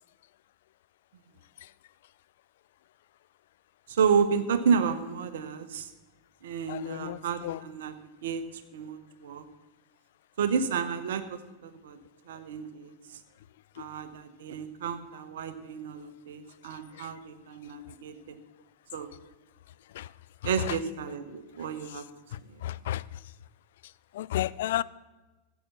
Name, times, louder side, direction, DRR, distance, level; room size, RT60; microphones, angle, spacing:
voice 1, 3.9-5.9 6.4-8.0 8.2-9.4 10.4-12.0 12.3-13.2 13.8-18.4 18.9-19.1 20.4-22.0 22.5-22.6, right 6 dB, 60° right, 1.0 m, -31 dB
voice 2, 6.7-7.6 13.8-13.9 17.0-17.1 19.9-20.1 20.7-20.8 22.3-23.0 24.1-24.8, left 13 dB, 55° left, 0.3 m, -32 dB
14.0 x 8.2 x 6.0 m
figure-of-eight pair, 90°, 0 cm